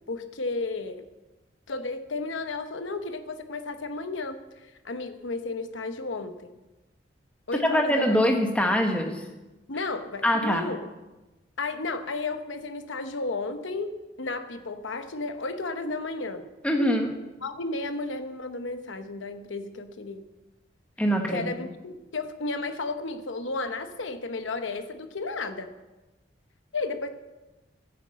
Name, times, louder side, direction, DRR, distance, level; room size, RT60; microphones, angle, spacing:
voice 1, 0.1-1.1 1.7-6.6 7.5-8.2 9.7-10.8 11.6-16.5 17.4-20.2 21.3-25.7 26.7-27.1, left 3 dB, 80° left, 8 dB, 1.0 m, -33 dB
voice 2, 7.5-9.2 10.2-10.7 16.6-17.2 21.0-21.4, equal, 5° left, 3 dB, 1.3 m, -23 dB
10.5 x 9.6 x 7.5 m, 1.1 s
head